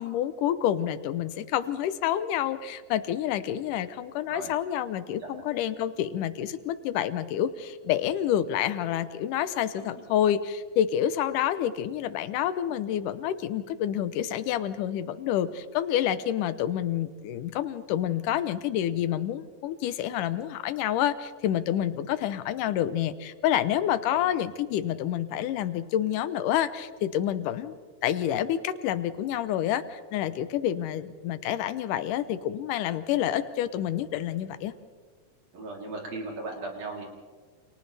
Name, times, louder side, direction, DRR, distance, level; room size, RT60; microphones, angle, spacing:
voice 1, 0.0-27.8 28.0-34.7, left 11 dB, 85° left, 12 dB, 2.4 m, -28 dB
voice 2, 35.5-37.0, right 2 dB, 55° right, -1 dB, 4.5 m, -37 dB
29.5 x 27.5 x 3.4 m, 1.5 s
omnidirectional pair, 3.7 m